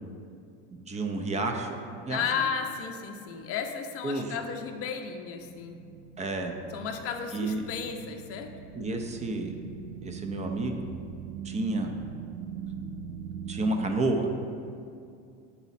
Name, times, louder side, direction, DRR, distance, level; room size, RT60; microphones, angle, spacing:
voice 1, 0.7-2.2 4.0-4.3 6.2-6.5 7.3-7.6 8.7-9.5 10.0-10.9 11.4-11.9 13.5-14.3, right 2 dB, 20° right, 4 dB, 0.5 m, -30 dB
voice 2, 2.1-5.8 6.7-8.6, left 6 dB, 40° left, 4 dB, 0.6 m, -34 dB
sound 1, 5.4-13.9, right 7 dB, 85° right, 0.5 m, -41 dB
6.9 x 4.1 x 4.1 m, 2.4 s
supercardioid pair, 110°, 36 cm